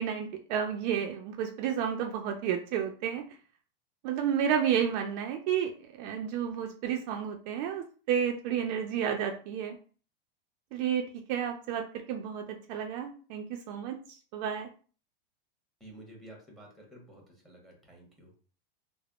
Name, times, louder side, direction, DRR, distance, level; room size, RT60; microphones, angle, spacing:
voice 1, 0.0-3.2 4.0-5.7 6.0-9.8 10.7-14.7, right 8 dB, 50° right, 3 dB, 0.4 m, -31 dB
voice 2, 15.8-18.3, right 1 dB, ahead, 0 dB, 1.0 m, -51 dB
3.4 x 2.0 x 2.3 m, 0.40 s
supercardioid pair, 125°, 29 cm